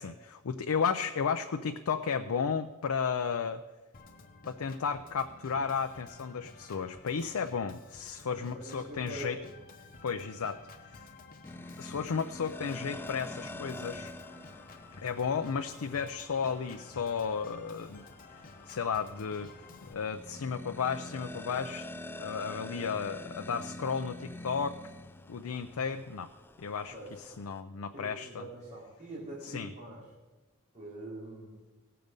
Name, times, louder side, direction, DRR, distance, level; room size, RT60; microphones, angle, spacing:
voice 1, 0.0-3.6 4.5-9.4 10.0-11.1 11.8-14.1 15.0-18.0 18.7-19.5 19.8-21.9 22.2-24.8 25.3-26.3 26.6-26.9 27.4-28.4 29.4-29.7, left 6 dB, 75° left, 7 dB, 0.5 m, -33 dB
Organ, 3.9-19.9, left 3 dB, 40° left, 1.0 m, -53 dB
voice 2, 8.5-9.3 26.9-27.2 27.9-30.0 30.7-31.6, right 1 dB, 35° right, -9 dB, 3.9 m, -44 dB
sound 1, 11.4-27.6, left 1 dB, 10° left, 0.3 m, -46 dB
17.0 x 6.7 x 5.3 m, 1.2 s
head